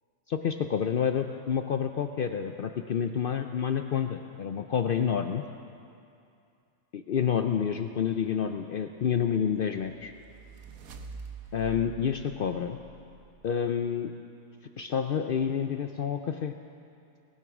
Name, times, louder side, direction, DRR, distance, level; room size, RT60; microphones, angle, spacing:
voice 1, 0.3-5.4 6.9-10.1 11.5-12.8 13.4-14.1 14.8-16.5, left 7 dB, 65° left, 7 dB, 0.5 m, -29 dB
sound 1, 9.8-13.6, right 5 dB, 80° right, 1.3 m, -46 dB
18.5 x 11.0 x 6.0 m, 2.5 s
omnidirectional pair, 1.5 m